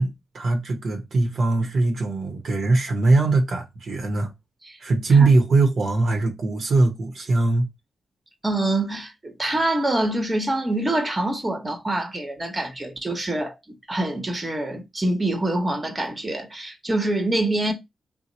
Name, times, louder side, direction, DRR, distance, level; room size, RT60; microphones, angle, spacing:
voice 1, 0.0-4.3 4.8-7.7, right 3 dB, 65° right, 0.7 m, -21 dB
voice 2, 8.4-17.7, right 1 dB, 25° right, 0.9 m, -25 dB
2.9 x 2.0 x 4.0 m
cardioid pair, 60°, 0 cm